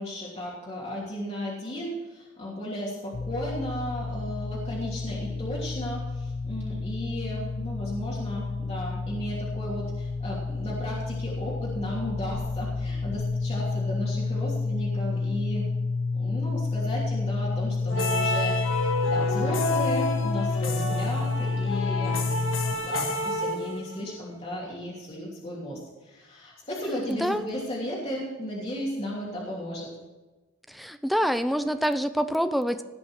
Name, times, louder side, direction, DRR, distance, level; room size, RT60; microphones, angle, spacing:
voice 1, 0.0-15.7 16.1-22.2 22.7-29.9, equal, 30° left, -6 dB, 3.0 m, -35 dB
sound 1, 3.1-22.8, left 3 dB, 50° left, 0.5 m, -30 dB
sound 2, 17.9-24.2, left 2 dB, 75° left, 1.6 m, -29 dB
voice 2, 27.1-27.5 30.7-32.8, equal, ahead, 10 dB, 0.6 m, -26 dB
18.0 x 6.1 x 6.4 m, 1.2 s
head